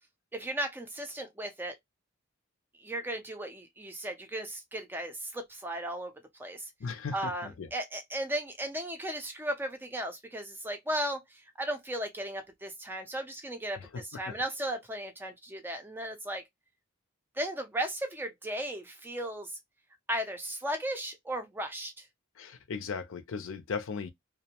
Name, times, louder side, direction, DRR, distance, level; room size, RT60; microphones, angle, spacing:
voice 1, 0.3-1.8 2.8-6.7 7.1-16.4 17.4-19.6 20.1-22.1, right 1 dB, 10° right, 0.4 m, -36 dB
voice 2, 6.8-7.7 13.8-14.4 22.4-24.1, left 5 dB, 70° left, 0.5 m, -37 dB
2.5 x 2.1 x 2.8 m
head